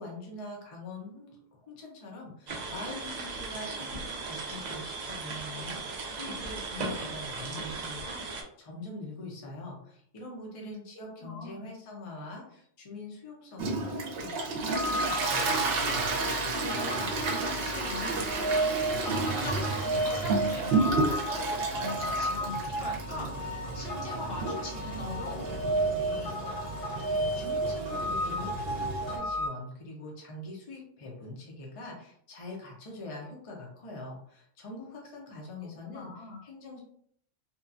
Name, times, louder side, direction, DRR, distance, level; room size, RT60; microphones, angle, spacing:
voice 1, 0.0-15.6 27.0-36.8, left 2 dB, 40° left, -1 dB, 0.5 m, -44 dB
sound 1, 2.5-8.4, right 4 dB, 80° right, 0.3 m, -37 dB
voice 2, 11.2-11.8 16.6-23.3 23.7-26.3 35.8-36.4, left 3 dB, 60° left, -1 dB, 0.8 m, -42 dB
Toilet flush, 13.6-29.2, right 3 dB, 60° right, 0.7 m, -32 dB
sound 2, 14.7-29.5, right 1 dB, 75° left, 1.4 m, -33 dB
2.8 x 2.2 x 2.4 m, 0.64 s
omnidirectional pair, 1.3 m